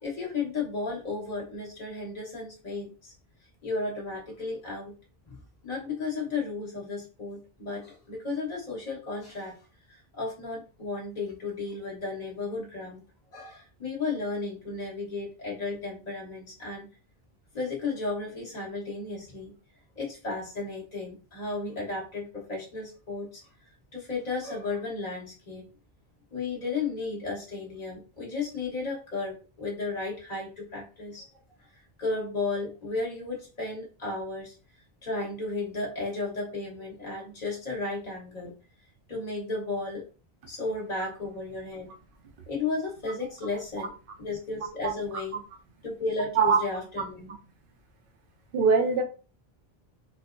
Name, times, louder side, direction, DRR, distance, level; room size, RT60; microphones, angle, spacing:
voice 1, 0.0-3.1 3.6-4.9 5.3-5.4 5.6-9.5 9.9-13.0 13.3-16.9 17.5-19.5 19.9-23.4 23.9-25.7 26.3-31.3 32.0-34.5 35.0-38.5 39.1-40.0 40.5-41.9 42.5-43.9 44.2-45.4 45.8-47.3, left 3 dB, 45° left, -3 dB, 1.3 m, -34 dB
voice 2, 48.5-49.0, right 5 dB, 65° right, 4 dB, 0.8 m, -22 dB
4.1 x 2.0 x 2.5 m, 0.35 s
omnidirectional pair, 1.0 m